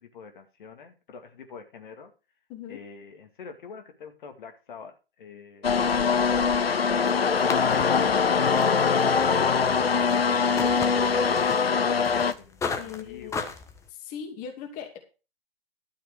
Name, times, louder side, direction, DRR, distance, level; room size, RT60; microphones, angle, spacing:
voice 1, 0.0-2.1 2.7-5.7 10.5-13.5, left 5 dB, 55° left, 5 dB, 2.5 m, -44 dB
voice 2, 2.5-2.8 12.8-13.4 13.9-15.0, left 8 dB, 30° left, 4 dB, 2.6 m, -39 dB
sound 1, 5.6-12.3, left 5 dB, 80° left, 0.9 m, -22 dB
sound 2, 7.0-13.9, left 5 dB, 10° left, 1.2 m, -37 dB
12.5 x 5.9 x 6.3 m, 0.31 s
figure-of-eight pair, 125°, 29 cm